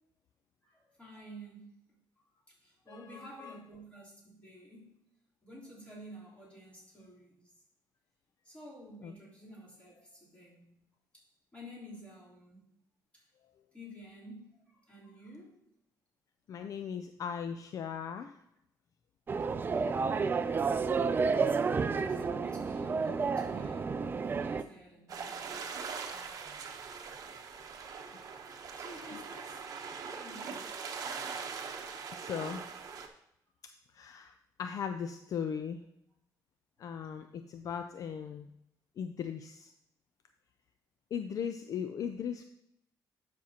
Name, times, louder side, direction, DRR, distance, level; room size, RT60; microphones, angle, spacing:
voice 1, 0.6-1.8 2.2-5.0 5.4-7.4 8.4-10.8 11.5-12.6 13.1-13.2 13.7-15.6 19.7-20.4 22.1-25.8 28.8-29.6 30.1-30.7 36.8-36.9, equal, 15° left, -7 dB, 3.4 m, -51 dB
voice 2, 2.9-3.6 9.0-9.1 16.5-18.4 32.1-32.7 33.9-34.3 34.6-35.8 36.8-38.5 39.0-39.7 41.1-42.4, left 7 dB, 50° left, 8 dB, 0.4 m, -38 dB
sound 1, 19.3-24.6, right 5 dB, 30° right, 0.4 m, -30 dB
sound 2, 25.1-33.1, right 5 dB, 55° right, 0.9 m, -42 dB
12.0 x 6.0 x 2.8 m, 0.78 s
cardioid pair, 135°, 7 cm